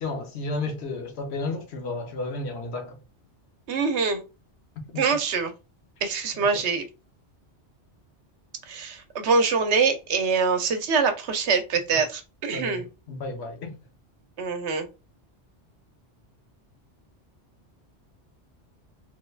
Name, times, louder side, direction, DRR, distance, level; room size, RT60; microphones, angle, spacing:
voice 1, 0.0-3.0 4.9-5.0 12.5-12.8 13.1-13.7, left 3 dB, 65° left, 1.0 m, -32 dB
voice 2, 3.7-4.2 5.0-5.5 6.0-6.9 8.7-12.8 14.4-14.9, right 5 dB, 70° right, 0.9 m, -24 dB
3.2 x 2.3 x 3.2 m
omnidirectional pair, 1.2 m